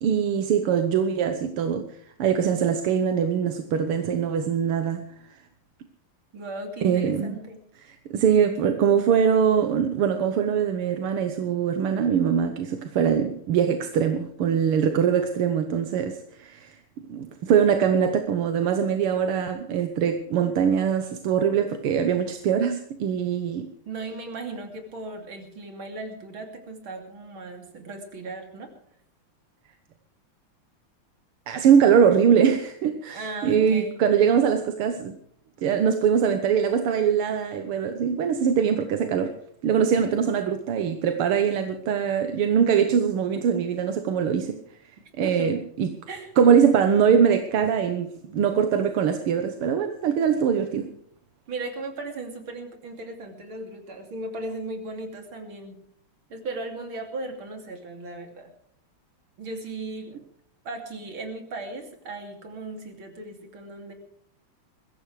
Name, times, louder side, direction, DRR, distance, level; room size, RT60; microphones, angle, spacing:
voice 1, 0.0-1.9 2.2-5.1 6.8-7.4 7.9-16.8 17.1-23.7 31.5-35.1 35.6-39.3 39.6-44.6 45.2-45.9 46.4-50.9, right 7 dB, 85° right, 7 dB, 2.0 m, -22 dB
voice 2, 6.3-7.6 23.9-28.7 33.1-34.0 45.2-45.6 46.1-46.3 51.5-55.8 56.3-58.5 59.4-60.2 60.7-63.9, right 2 dB, 70° right, 4 dB, 3.5 m, -37 dB
21.5 x 16.0 x 3.3 m, 0.66 s
omnidirectional pair, 2.4 m